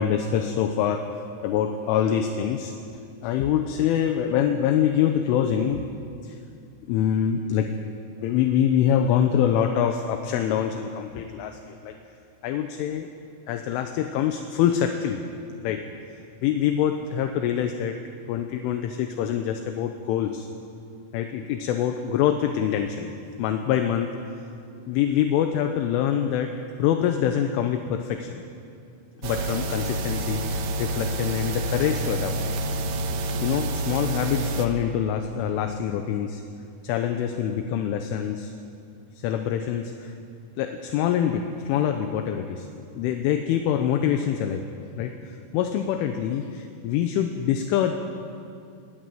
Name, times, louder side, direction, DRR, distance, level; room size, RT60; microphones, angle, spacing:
voice 1, 0.0-2.7 3.2-5.8 6.2-6.4 6.9-7.7 8.2-12.0 12.4-13.1 13.5-15.2 15.6-15.8 16.4-18.0 18.3-20.5 21.1-23.1 23.4-24.1 24.9-26.5 26.8-28.4 29.2-32.5 33.4-36.4 36.8-38.5 39.2-40.1 40.6-44.6 45.0-47.9, left 9 dB, 80° left, 6 dB, 3.3 m, -25 dB
sound 1, 29.2-34.7, right 2 dB, 85° right, 1.9 m, -28 dB
21.5 x 18.0 x 9.2 m, 2.5 s
omnidirectional pair, 6.0 m